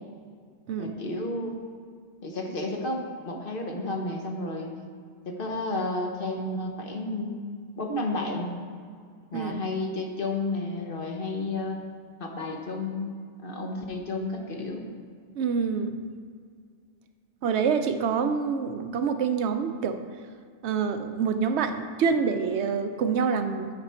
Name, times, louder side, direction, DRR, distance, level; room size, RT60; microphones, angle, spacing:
voice 1, 0.8-1.6 2.2-4.7 5.2-7.4 7.8-8.5 9.3-11.8 12.2-14.8, left 2 dB, 50° left, 1 dB, 1.1 m, -32 dB
voice 2, 15.3-16.0 17.4-20.0 20.6-23.7, right 6 dB, 75° right, 8 dB, 0.8 m, -26 dB
8.6 x 6.2 x 4.3 m, 2.1 s
omnidirectional pair, 1.2 m